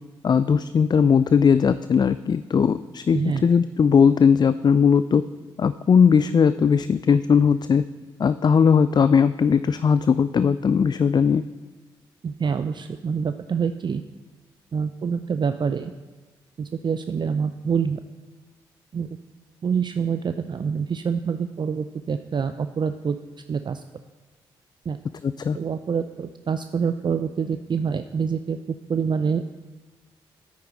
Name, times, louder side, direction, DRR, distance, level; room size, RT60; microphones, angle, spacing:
voice 1, 0.2-5.2 5.6-7.8 8.2-11.4 25.2-25.6, left 6 dB, 40° left, 14 dB, 0.4 m, -19 dB
voice 2, 3.1-3.5 12.2-14.0 14.7-15.9 16.6-18.0 18.9-19.1 19.6-23.2 23.5-23.8 24.9-25.0 25.5-28.6 28.9-29.4, right 6 dB, 45° right, 9 dB, 0.5 m, -26 dB
9.5 x 9.2 x 3.9 m, 1.3 s
hypercardioid pair, 40°, 11 cm